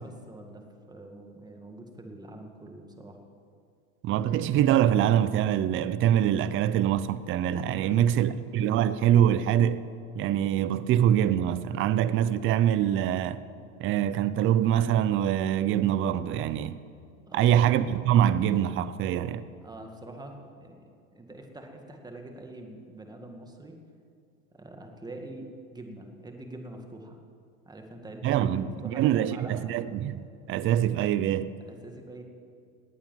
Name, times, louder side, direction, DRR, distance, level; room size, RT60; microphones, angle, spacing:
voice 1, 0.0-3.2 7.8-8.4 17.3-17.6 19.6-23.8 24.5-27.2 27.6-29.6 31.6-32.2, right 1 dB, 10° right, 1.9 m, -44 dB
voice 2, 4.0-9.8 10.2-13.4 13.8-16.8 17.3-19.4 28.2-31.5, right 10 dB, 30° right, 0.6 m, -24 dB
18.5 x 8.8 x 7.5 m
supercardioid pair, 120°, 42 cm